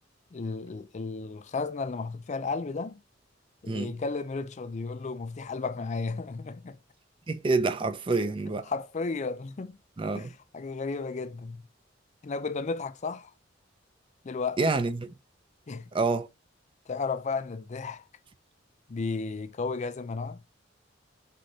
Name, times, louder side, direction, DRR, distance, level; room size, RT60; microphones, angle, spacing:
voice 1, 0.3-3.0 3.6-6.8 8.7-9.8 10.1-11.6 12.2-13.3 14.2-14.6 15.7-15.9 16.9-18.0 18.9-20.4, left 4 dB, 40° left, 0.4 m, -33 dB
voice 2, 7.3-8.7 10.0-10.3 14.6-15.1 15.9-16.3, right 3 dB, 25° right, 0.4 m, -27 dB
3.7 x 3.3 x 3.8 m
head